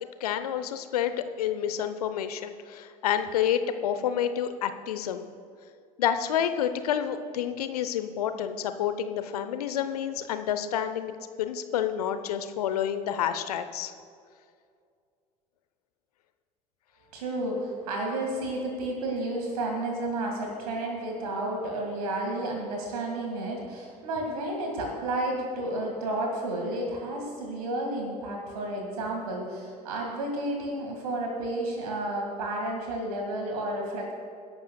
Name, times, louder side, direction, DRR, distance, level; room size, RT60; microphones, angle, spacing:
voice 1, 0.2-5.3 6.0-11.1 11.4-13.9, left 9 dB, 70° left, 10 dB, 0.8 m, -29 dB
voice 2, 17.1-34.1, right 1 dB, 70° right, 1 dB, 2.0 m, -31 dB
23.0 x 11.5 x 2.3 m, 2.3 s
figure-of-eight pair, 70°, 20 cm